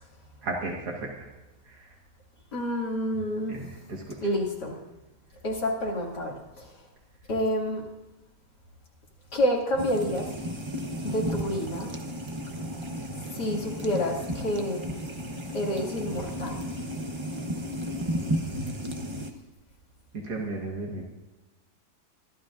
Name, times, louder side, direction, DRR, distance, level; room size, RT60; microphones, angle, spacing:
voice 1, 0.4-1.1 1.7-1.9 3.5-4.2 20.1-21.0, right 2 dB, 65° right, -1 dB, 2.2 m, -34 dB
voice 2, 2.5-3.6 4.2-4.8 5.4-6.8 7.3-7.8 9.3-10.3 11.0-11.9 13.3-14.9 15.5-16.7, equal, 70° left, -3 dB, 3.2 m, -29 dB
sound 1, 9.8-19.3, equal, 25° right, 0.7 m, -33 dB
24.0 x 12.5 x 2.6 m, 1.1 s
omnidirectional pair, 1.9 m